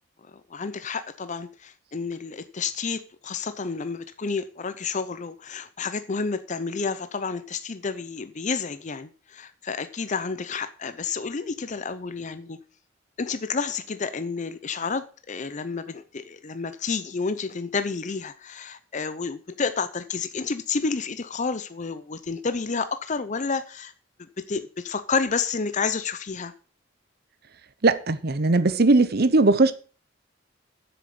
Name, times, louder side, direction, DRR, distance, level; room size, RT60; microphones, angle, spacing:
voice 1, 0.2-12.6 13.2-23.9 24.2-26.5, left 5 dB, 40° left, 0.6 m, -30 dB
voice 2, 27.8-29.7, right 3 dB, 55° right, 0.8 m, -19 dB
7.8 x 6.8 x 7.7 m
head